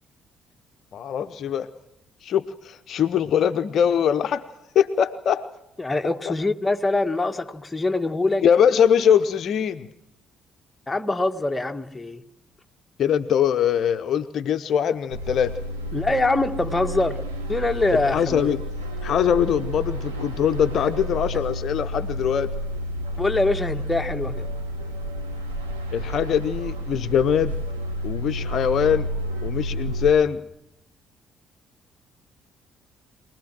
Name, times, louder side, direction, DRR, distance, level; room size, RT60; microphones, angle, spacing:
voice 1, 0.9-1.7 2.2-4.4 4.7-5.4 8.4-9.9 13.0-15.5 18.1-18.6 19.0-22.5 25.9-27.5 28.0-29.1 29.4-30.4, left 8 dB, 55° left, 0.9 m, -22 dB
voice 2, 5.8-8.4 10.9-12.2 15.9-17.2 17.5-18.5 21.3-21.4 23.2-24.4, left 2 dB, 15° left, 1.8 m, -24 dB
sound 1, 15.1-30.1, equal, 85° right, 3.0 m, -31 dB
24.5 x 19.5 x 7.6 m
figure-of-eight pair, 45°, 0 cm